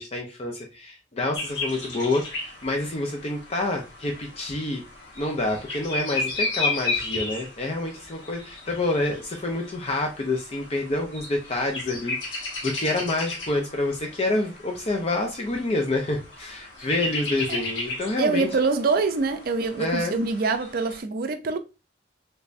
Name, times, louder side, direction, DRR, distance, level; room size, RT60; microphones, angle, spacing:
voice 1, 0.0-4.8 5.2-18.5 19.8-20.2, left 2 dB, 35° left, 0.5 m, -28 dB
sound 1, 1.3-21.0, left 2 dB, 75° left, 1.1 m, -34 dB
voice 2, 18.2-21.6, right 4 dB, 55° right, 0.4 m, -25 dB
3.3 x 3.2 x 2.5 m
head